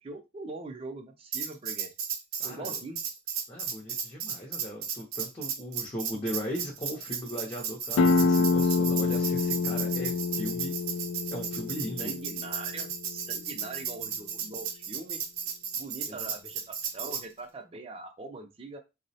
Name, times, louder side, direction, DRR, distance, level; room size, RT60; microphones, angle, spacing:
voice 1, 0.0-1.9 2.4-3.0 12.0-15.2 15.8-18.8, right 3 dB, 30° right, 5 dB, 0.4 m, -42 dB
Tambourine, 1.3-17.2, right 7 dB, 85° right, 0.5 m, -35 dB
voice 2, 2.4-2.8 3.5-10.7 11.3-12.1 16.1-16.3, equal, 25° left, -2 dB, 0.6 m, -38 dB
sound 1, 8.0-13.4, left 4 dB, 70° left, 0.3 m, -27 dB
3.7 x 2.0 x 2.7 m, 0.26 s
head